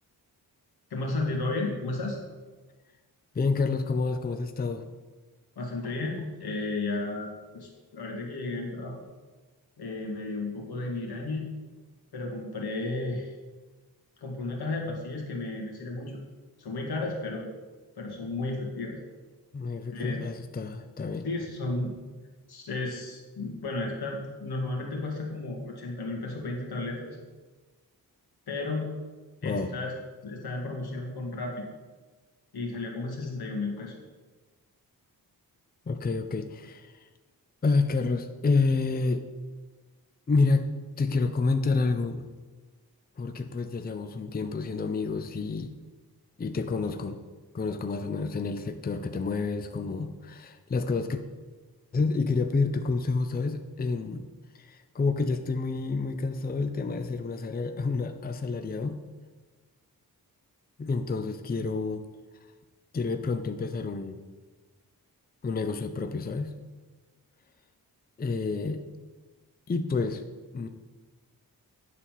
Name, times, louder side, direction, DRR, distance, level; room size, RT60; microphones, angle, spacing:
voice 1, 0.9-2.2 5.6-9.0 9.8-11.5 12.1-13.3 14.2-16.2 16.6-17.5 18.0-19.0 19.9-20.2 21.2-22.0 22.5-27.2 28.5-28.9 29.4-29.9 30.2-31.7 32.5-34.0, left 2 dB, 85° left, 0 dB, 2.2 m, -33 dB
voice 2, 3.3-4.9 19.5-21.3 29.4-29.7 35.9-37.1 37.6-39.3 40.3-40.7 41.0-42.3 43.2-45.7 46.4-47.2 47.5-51.2 51.9-54.3 54.5-59.0 60.8-62.0 62.9-64.2 65.4-66.5 68.2-68.8 69.7-70.2 70.5-70.7, left 4 dB, 25° left, 8 dB, 0.5 m, -29 dB
9.9 x 4.2 x 7.4 m, 1.3 s
wide cardioid pair, 110°, 38 cm